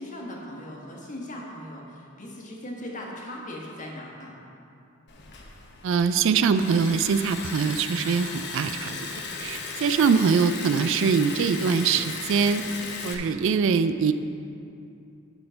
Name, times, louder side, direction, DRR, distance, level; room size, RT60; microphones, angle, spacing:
voice 1, 0.0-4.4, left 1 dB, 40° left, -2 dB, 1.4 m, -39 dB
Liquid, 5.1-13.1, left 4 dB, 55° left, 0.9 m, -36 dB
voice 2, 5.8-9.0 9.4-12.6 13.0-14.1, right 5 dB, 65° right, 11 dB, 0.3 m, -23 dB
11.5 x 4.3 x 5.7 m, 2.6 s
head